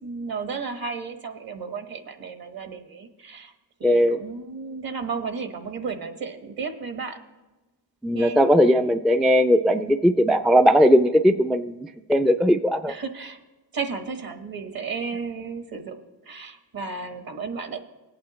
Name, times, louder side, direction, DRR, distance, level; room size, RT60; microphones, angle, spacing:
voice 1, 0.0-3.5 3.8-7.2 8.1-8.4 12.9-13.4 13.7-17.8, right 5 dB, 55° right, 7 dB, 1.4 m, -33 dB
voice 2, 3.8-4.2 8.0-12.9, equal, ahead, 8 dB, 0.3 m, -19 dB
19.5 x 8.7 x 3.1 m, 1.2 s
cardioid pair, 70°, 42 cm